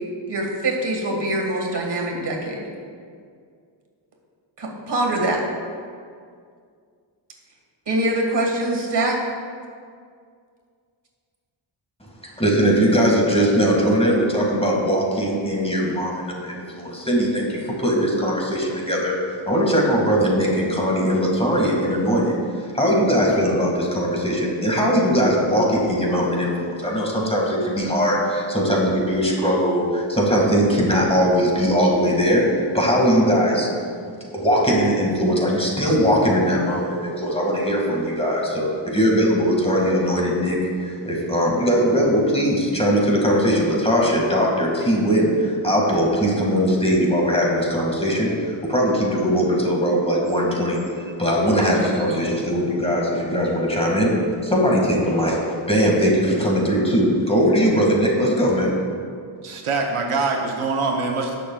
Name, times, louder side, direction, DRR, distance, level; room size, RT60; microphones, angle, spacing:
voice 1, 0.3-2.7 4.6-5.4 7.9-9.2, right 1 dB, 55° right, 0 dB, 1.8 m, -23 dB
voice 2, 12.4-19.1 19.5-22.4 22.7-32.4 32.7-33.7 34.3-40.6 40.8-50.8 51.1-54.1 54.4-55.4 55.7-58.7, equal, 10° left, -3 dB, 2.0 m, -20 dB
voice 3, 59.4-61.4, right 3 dB, 85° right, 1 dB, 1.1 m, -24 dB
17.5 x 6.7 x 2.4 m, 2.2 s
wide cardioid pair, 90°, 49 cm